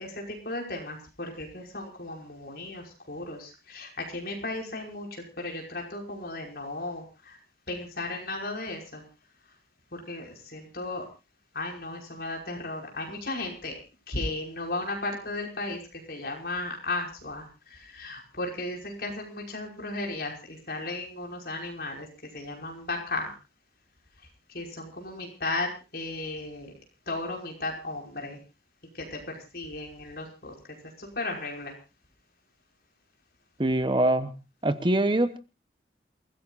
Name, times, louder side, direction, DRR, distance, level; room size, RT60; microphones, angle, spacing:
voice 1, 0.0-7.4 7.7-9.0 9.9-11.0 11.5-13.7 14.1-22.1 22.3-23.3 24.5-26.7 27.1-28.4 28.9-30.5 31.0-31.7, left 2 dB, 55° left, 0 dB, 5.5 m, -35 dB
voice 2, 33.6-34.3 34.6-35.4, right 1 dB, 25° right, 10 dB, 1.0 m, -23 dB
28.5 x 15.5 x 2.5 m, 0.30 s
head